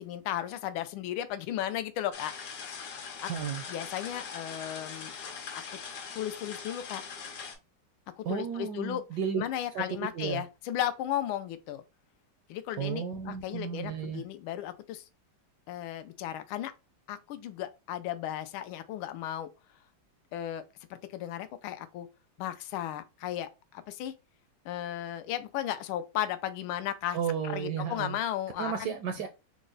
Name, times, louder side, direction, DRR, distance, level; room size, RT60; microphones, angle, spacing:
voice 1, 0.0-2.7 3.2-3.3 3.7-5.1 5.5-5.6 6.1-7.0 8.2-9.0 9.4-11.8 12.5-15.0 15.7-16.7 17.1-19.5 20.3-20.6 20.9-22.1 22.4-24.1 24.6-27.2 27.4-28.9, left 11 dB, 80° left, 1.4 m, -35 dB
sound 1, 2.1-7.5, left 6 dB, 60° left, 1.3 m, -41 dB
voice 2, 3.3-3.6 8.2-9.4 9.7-10.4 12.8-14.2 27.1-28.2 28.6-29.3, right 7 dB, 75° right, 1.0 m, -33 dB
4.5 x 2.1 x 3.8 m
omnidirectional pair, 2.3 m